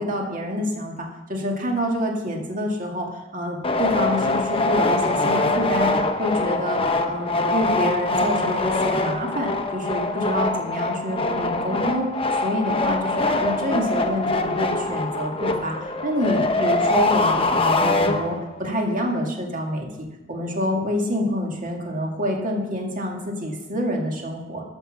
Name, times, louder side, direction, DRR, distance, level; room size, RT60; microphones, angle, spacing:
voice 1, 0.0-24.6, equal, 45° right, 1 dB, 2.0 m, -27 dB
sound 1, 3.6-18.6, left 2 dB, 30° left, 0.8 m, -23 dB
12.5 x 6.1 x 6.4 m, 1.0 s
head